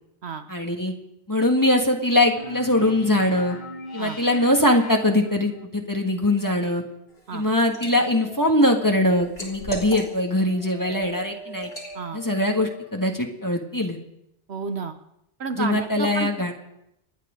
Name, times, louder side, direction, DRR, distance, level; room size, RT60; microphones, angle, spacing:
voice 1, 0.5-0.9 1.3-3.6 3.9-6.8 7.3-11.7 12.1-14.0 15.6-16.5, left 1 dB, 15° left, 2 dB, 1.6 m, -22 dB
sound 1, 2.4-5.7, left 1 dB, 40° left, 1.4 m, -39 dB
Liquid, 7.1-7.9 8.3-10.4 10.9-11.1 11.6-11.9, left 1 dB, 55° left, 3.9 m, -37 dB
Dog, 7.6-13.1, left 2 dB, 75° left, 4.7 m, -43 dB
voice 2, 14.5-15.0 15.4-16.5, right 5 dB, 60° right, 8 dB, 1.2 m, -31 dB
27.5 x 9.8 x 5.1 m, 0.82 s
omnidirectional pair, 1.2 m